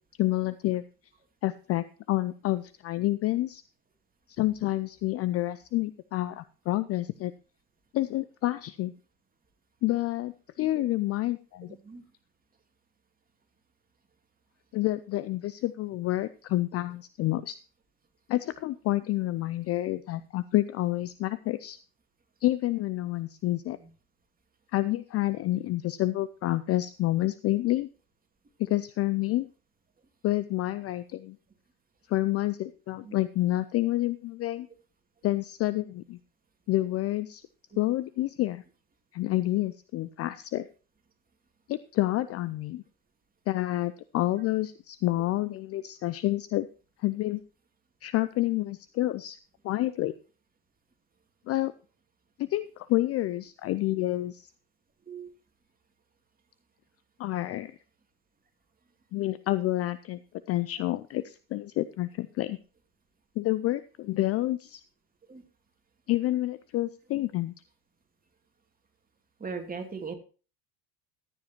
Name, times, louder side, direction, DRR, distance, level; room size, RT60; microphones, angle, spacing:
voice 1, 0.2-0.8 1.4-3.6 4.3-7.3 7.9-8.9 9.8-11.8 14.7-17.6 18.3-21.8 22.4-23.8 24.7-27.9 28.6-29.5 30.2-31.4 32.1-34.7 35.2-36.2 36.7-37.4 37.8-38.6 39.1-40.7 41.7-42.8 43.5-46.7 47.0-47.4 48.0-49.4 49.6-50.1 51.5-51.7 52.4-54.5 57.2-57.7 59.1-60.2 60.5-62.6 63.4-64.8 66.1-67.5, left 16 dB, 35° left, 15 dB, 0.5 m, -28 dB
voice 2, 11.7-12.0 20.2-20.3 23.7-23.9 33.0-33.2 37.7-37.9 55.1-55.3 65.3-65.5 69.4-70.1, right 5 dB, 20° right, 3 dB, 2.8 m, -40 dB
14.5 x 9.9 x 3.0 m, 0.36 s
figure-of-eight pair, 70°, 46 cm